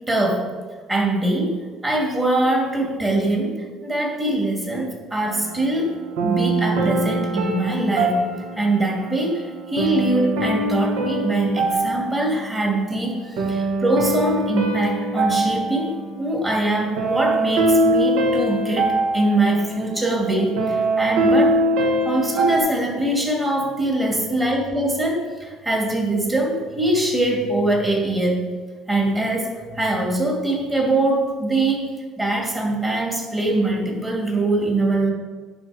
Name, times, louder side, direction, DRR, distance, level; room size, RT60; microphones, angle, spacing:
voice 1, 0.1-0.5 0.9-8.2 8.6-21.6 22.0-28.5 28.9-31.9 32.2-35.1, right 2 dB, 15° right, -2 dB, 2.4 m, -23 dB
sound 1, 5.2-22.6, right 1 dB, 85° right, 1.4 m, -23 dB
11.0 x 4.4 x 4.9 m, 1.4 s
cardioid pair, 120°, 0 cm